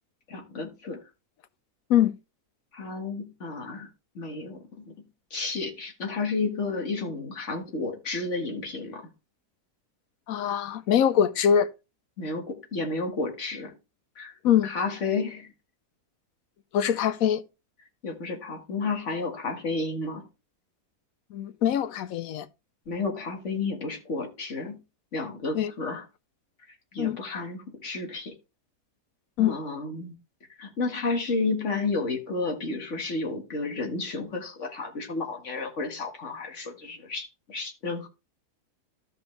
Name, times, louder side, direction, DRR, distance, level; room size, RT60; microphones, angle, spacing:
voice 1, 0.3-1.0 2.7-3.9 4.2-5.0 5.3-9.1 12.2-13.7 14.2-14.4 14.6-15.5 18.0-20.3 22.9-24.8 25.1-26.0 26.9-28.3 29.4-30.2 30.6-38.1, left 3 dB, 45° left, 1.9 m, -31 dB
voice 2, 10.3-11.7 14.4-14.7 16.7-17.4 21.3-22.5 25.5-25.7 27.0-27.2 29.4-29.6, left 9 dB, 70° left, 0.9 m, -23 dB
14.0 x 5.1 x 3.2 m
omnidirectional pair, 1.7 m